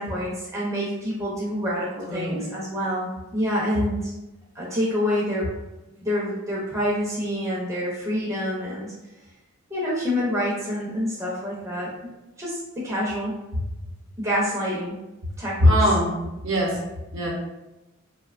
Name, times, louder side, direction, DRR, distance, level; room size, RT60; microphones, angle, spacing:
voice 1, 0.0-4.1 4.5-5.5 6.0-8.9 9.7-11.9 12.4-13.4 14.2-15.0 15.4-15.7, equal, 15° right, -7 dB, 0.5 m, -27 dB
voice 2, 2.1-2.5 5.9-6.1 13.5-13.6 15.6-16.8 17.1-17.3, equal, 60° right, -3 dB, 0.7 m, -22 dB
2.7 x 2.1 x 2.4 m, 1.0 s
head